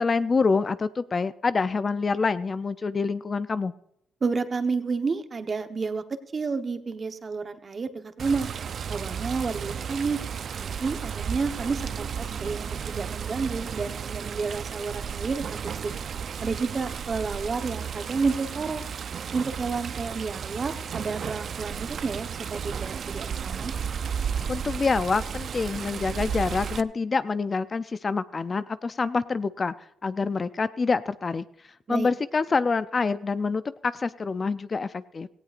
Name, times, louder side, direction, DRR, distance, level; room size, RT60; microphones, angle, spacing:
voice 1, 0.0-3.7 24.5-29.7 30.0-31.5 31.9-35.3, left 4 dB, 35° left, 14 dB, 0.5 m, -26 dB
voice 2, 4.2-6.0 6.3-8.5 8.9-10.2 10.5-12.1 12.4-15.9 16.4-18.8 19.3-23.7 31.9-32.1, right 4 dB, 35° right, 9 dB, 1.1 m, -30 dB
Water, 8.2-26.8, right 7 dB, 55° right, 0.5 m, -33 dB
17.5 x 16.0 x 2.5 m, 0.75 s
cardioid pair, 90°, 0 cm